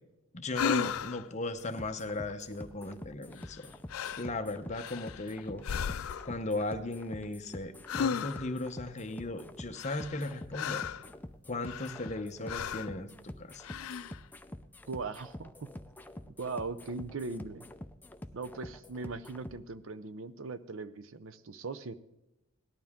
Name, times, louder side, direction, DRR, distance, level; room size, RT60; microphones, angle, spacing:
voice 1, 0.3-3.7 4.2-5.6 6.2-10.9 11.5-13.7, left 2 dB, 35° left, 8 dB, 0.8 m, -37 dB
sound 1, 0.5-1.3 3.4-3.6 3.9-4.3 4.7-5.3 5.6-6.4 7.9-8.6 9.8-11.1 11.6-12.2 12.5-13.0 13.6-14.2, left 7 dB, 75° left, 0.4 m, -35 dB
sound 2, 1.6-19.6, left 1 dB, 10° left, 0.5 m, -47 dB
voice 2, 14.9-15.7 16.3-17.7 18.3-21.9, right 3 dB, 65° right, 13 dB, 0.6 m, -39 dB
17.5 x 11.5 x 3.6 m, 0.90 s
head